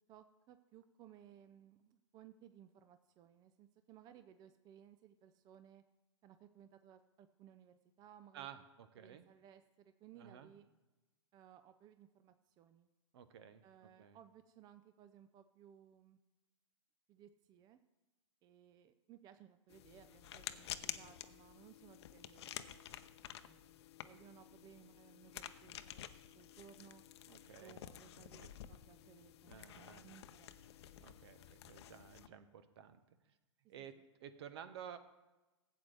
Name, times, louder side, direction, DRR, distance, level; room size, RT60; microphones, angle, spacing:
voice 1, 0.1-5.8 6.2-8.6 9.0-10.7 11.3-12.9 13.6-16.2 17.1-17.8 18.4-26.0 26.3-27.0 27.6-30.5 33.8-34.1, right 10 dB, 25° right, 10 dB, 0.5 m, -61 dB
voice 2, 8.3-9.3 10.2-10.5 13.1-14.2 27.3-27.8 28.1-28.5 29.5-30.1 31.0-33.0 33.7-33.9 34.2-35.0, right 9 dB, 55° right, 11 dB, 1.0 m, -53 dB
sound 1, 19.7-32.3, left 11 dB, 60° left, 0.7 m, -51 dB
15.5 x 8.3 x 3.4 m, 1.1 s
hypercardioid pair, 115°, 16 cm